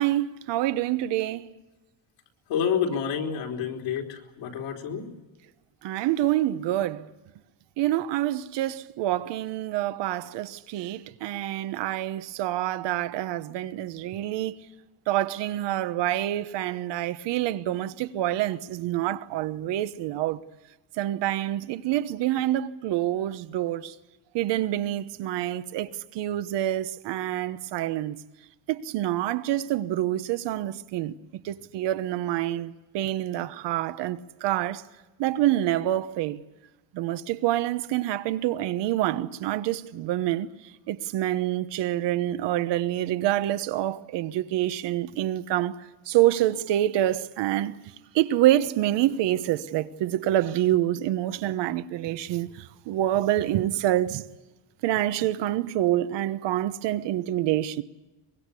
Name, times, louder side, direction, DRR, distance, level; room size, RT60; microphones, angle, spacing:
voice 1, 0.0-1.5 5.8-7.1 7.8-14.6 15.1-20.4 21.0-23.9 24.3-28.2 28.7-31.2 31.4-34.8 35.2-36.4 36.9-40.5 40.9-47.8 48.1-54.2 54.8-57.8, right 13 dB, 70° right, 1.2 m, -27 dB
voice 2, 2.5-5.1, left 7 dB, 75° left, 3.8 m, -28 dB
23.5 x 22.0 x 8.4 m
cardioid pair, 175°, 45 cm